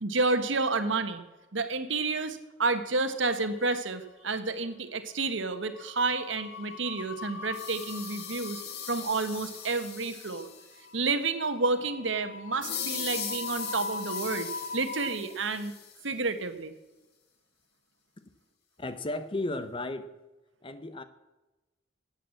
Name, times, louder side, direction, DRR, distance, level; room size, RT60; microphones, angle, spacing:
voice 1, 0.0-1.2 1.5-8.6 8.9-10.5 10.9-14.5 14.7-15.7 16.0-16.7, right 3 dB, 75° right, 9 dB, 1.3 m, -30 dB
sound 1, 3.1-3.9 4.1-4.4 5.6-15.1, left 3 dB, 75° left, 2.9 m, -42 dB
sound 2, 7.5-10.9 12.6-16.1, left 8 dB, 55° left, 1.6 m, -39 dB
voice 2, 18.8-20.1 20.6-21.0, left 2 dB, 25° left, 11 dB, 0.8 m, -34 dB
15.0 x 9.0 x 7.7 m, 1.1 s
head